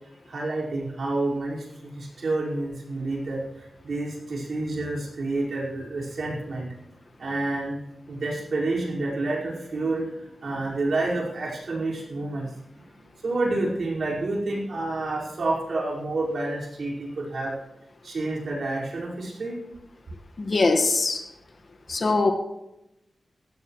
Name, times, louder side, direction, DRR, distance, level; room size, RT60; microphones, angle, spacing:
voice 1, 0.3-6.7 7.2-7.8 8.1-12.5 13.0-17.5 18.0-19.6, right 2 dB, 65° right, -4 dB, 5.2 m, -29 dB
voice 2, 20.4-21.2 21.9-22.3, left 3 dB, 50° left, 5 dB, 1.7 m, -22 dB
16.5 x 15.0 x 3.2 m, 0.89 s
wide cardioid pair, 135°, 0 cm